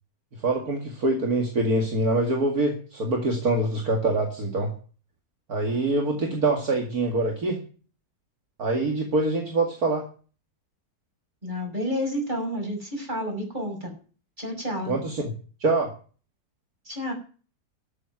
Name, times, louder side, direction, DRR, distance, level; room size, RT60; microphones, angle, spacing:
voice 1, 0.4-4.7 5.5-7.6 8.6-10.1 14.8-15.3 15.6-15.9, right 2 dB, 65° right, 2 dB, 2.7 m, -24 dB
voice 2, 11.4-13.9 14.4-14.9 16.8-17.1, equal, 25° right, 2 dB, 6.4 m, -30 dB
13.0 x 7.9 x 9.4 m, 0.38 s
omnidirectional pair, 1.7 m